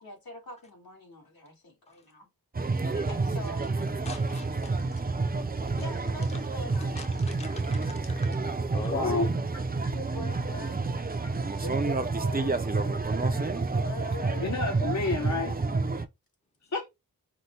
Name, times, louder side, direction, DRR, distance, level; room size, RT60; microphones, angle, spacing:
voice 1, 0.0-2.3 2.7-3.8 5.8-7.0 9.9-10.9 11.6-14.6 15.2-15.7, left 1 dB, 75° left, 2.2 m, -44 dB
sound 1, 2.6-16.1, right 3 dB, 25° right, 0.5 m, -29 dB
voice 2, 4.1-4.7 7.0-9.2, left 2 dB, 20° left, 0.7 m, -41 dB
voice 3, 8.9-9.3 9.8-9.9 14.4-15.5 16.7-16.9, left 3 dB, 50° left, 0.9 m, -29 dB
5.6 x 2.3 x 3.2 m
wide cardioid pair, 75°, 36 cm